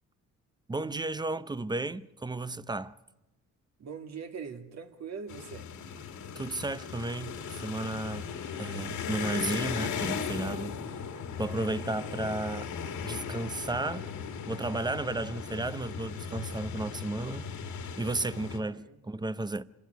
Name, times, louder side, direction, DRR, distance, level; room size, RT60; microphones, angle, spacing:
voice 1, 0.7-2.9 6.4-8.3 8.6-11.0 11.4-12.7 13.0-14.1 14.5-17.5 18.0-19.6, right 2 dB, 15° right, 0.7 m, -33 dB
voice 2, 3.8-5.7 18.5-19.0, right 6 dB, 60° right, 2.4 m, -42 dB
sound 1, 5.3-18.6, left 6 dB, 75° left, 2.3 m, -37 dB
26.0 x 15.5 x 9.2 m
cardioid pair, 90°, 30 cm